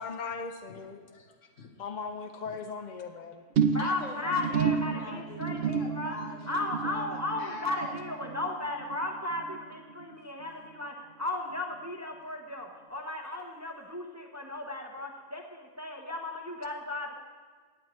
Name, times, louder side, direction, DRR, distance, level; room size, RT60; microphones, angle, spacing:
voice 1, 0.0-1.0 1.8-3.4, left 5 dB, 50° left, 7 dB, 0.6 m, -38 dB
voice 2, 0.7-2.0 2.4-2.6 3.8-8.0 13.3-13.4, left 3 dB, 80° left, 3 dB, 1.6 m, -45 dB
sound 1, 3.6-10.1 10.4-10.8 11.2-11.3, right 6 dB, 60° right, 0.8 m, -32 dB
voice 3, 3.7-6.1 6.5-17.1, left 2 dB, 15° right, 1 dB, 0.7 m, -35 dB
17.0 x 9.3 x 3.1 m, 1.5 s
omnidirectional pair, 1.3 m